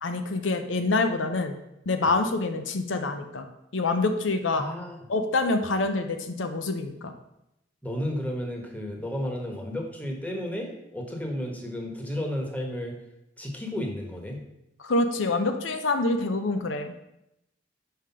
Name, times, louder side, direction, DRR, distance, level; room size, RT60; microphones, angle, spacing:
voice 1, 0.0-1.5 1.9-3.5 3.7-4.6 5.1-7.1 14.8-16.9, left 3 dB, 85° left, 7 dB, 0.7 m, -26 dB
voice 2, 4.5-5.0 7.8-12.9 13.4-14.4, left 1 dB, 10° left, 1 dB, 1.1 m, -32 dB
5.7 x 4.8 x 5.7 m, 0.85 s
head